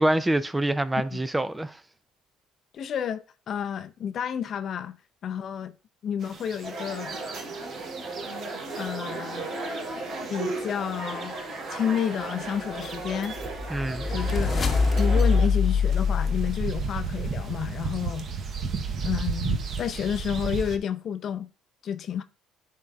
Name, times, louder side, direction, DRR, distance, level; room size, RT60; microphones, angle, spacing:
voice 1, 0.0-1.8 13.7-14.1, right 1 dB, 10° right, 0.3 m, -25 dB
voice 2, 2.7-5.0 5.2-5.7 6.0-7.2 8.7-9.5 10.3-11.3 11.7-13.3 14.1-14.6 14.9-18.3 19.0-21.5 21.8-22.2, left 8 dB, 50° left, 0.5 m, -30 dB
sound 1, 6.2-20.8, right 5 dB, 45° right, 0.8 m, -35 dB
sound 2, 6.6-15.5, right 2 dB, 70° right, 2.6 m, -35 dB
sound 3, 13.1-17.3, left 5 dB, 35° left, 0.9 m, -24 dB
10.5 x 3.8 x 2.3 m
cardioid pair, 105°, 0 cm